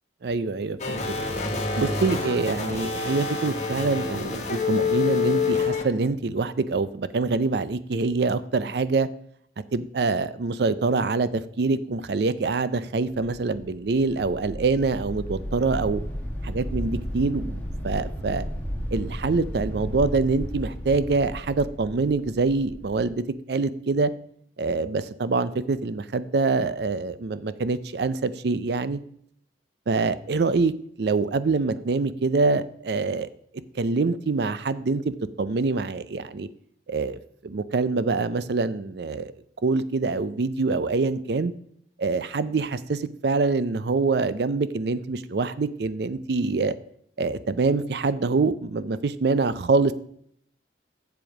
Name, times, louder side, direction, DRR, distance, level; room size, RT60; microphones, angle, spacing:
voice 1, 0.2-1.0 1.8-9.1 9.7-16.0 16.4-18.4 18.9-24.1 24.6-29.0 29.9-30.7 31.0-33.3 33.8-36.5 36.9-39.3 39.6-41.5 42.0-46.7 47.2-49.9, right 3 dB, 65° right, 15 dB, 0.5 m, -25 dB
sound 1, 0.8-5.8, left 4 dB, 40° left, 1.3 m, -27 dB
sound 2, 13.1-23.1, equal, 10° left, 1.5 m, -34 dB
7.8 x 7.0 x 4.8 m, 0.66 s
head